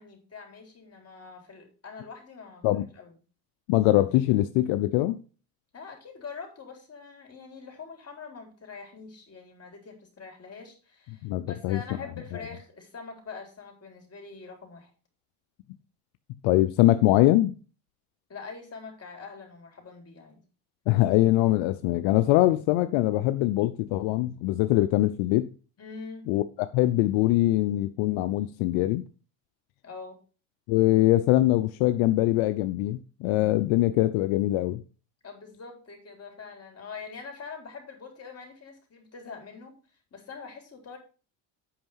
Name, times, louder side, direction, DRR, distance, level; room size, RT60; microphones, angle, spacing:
voice 1, 0.0-3.2 5.7-14.9 18.3-20.4 25.8-26.3 29.8-30.2 35.2-39.8 40.1-41.0, left 5 dB, 30° left, 4.0 m, -44 dB
voice 2, 3.7-5.2 11.2-11.8 12.3-12.4 16.4-17.5 20.9-25.5 26.3-26.4 26.7-29.0 30.7-34.8, left 16 dB, 80° left, 0.7 m, -23 dB
8.7 x 5.6 x 5.5 m
supercardioid pair, 95°, 46 cm